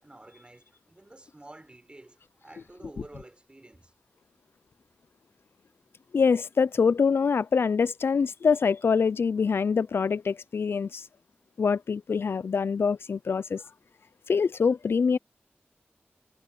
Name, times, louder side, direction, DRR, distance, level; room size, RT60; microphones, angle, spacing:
voice 1, 0.0-3.9, right 2 dB, 25° right, 5.3 m, -50 dB
voice 2, 6.1-11.0 11.6-13.6 14.3-15.2, left 5 dB, 75° left, 0.3 m, -24 dB
wide cardioid pair, 75°, 4 cm